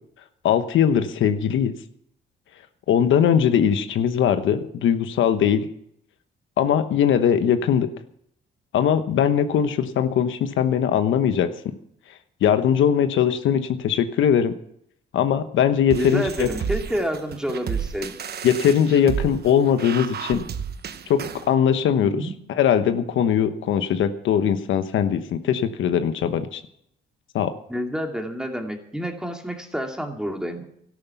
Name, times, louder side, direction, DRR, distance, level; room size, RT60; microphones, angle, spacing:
voice 1, 0.4-1.7 2.9-5.7 6.6-7.9 8.7-11.5 12.4-14.5 15.1-16.5 18.4-20.5 21.1-22.3 22.6-26.6 27.3-27.5, left 8 dB, 75° left, 9 dB, 1.1 m, -20 dB
voice 2, 15.9-18.1 22.0-22.3 27.7-30.6, equal, 5° right, 3 dB, 2.4 m, -29 dB
sound 1, 15.9-21.5, right 7 dB, 55° right, 1.1 m, -32 dB
13.0 x 11.5 x 7.1 m, 0.71 s
cardioid pair, 90°, 20 cm